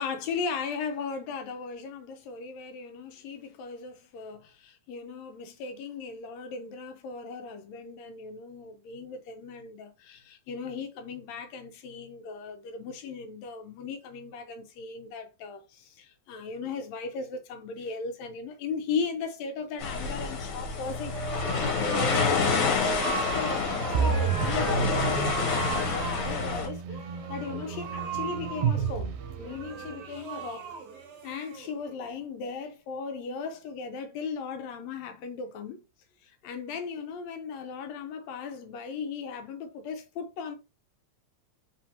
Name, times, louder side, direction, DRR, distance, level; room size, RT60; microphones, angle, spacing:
voice 1, 0.0-21.2 21.9-30.8 31.2-35.8 36.2-40.6, left 5 dB, 75° left, 1.8 m, -37 dB
sound 1, 19.8-26.7, left 5 dB, 60° left, 1.7 m, -28 dB
sound 2, 21.0-32.0, right 5 dB, 60° right, 1.2 m, -37 dB
sound 3, 23.9-29.9, right 7 dB, 80° right, 1.8 m, -31 dB
4.4 x 3.5 x 2.7 m
omnidirectional pair, 3.4 m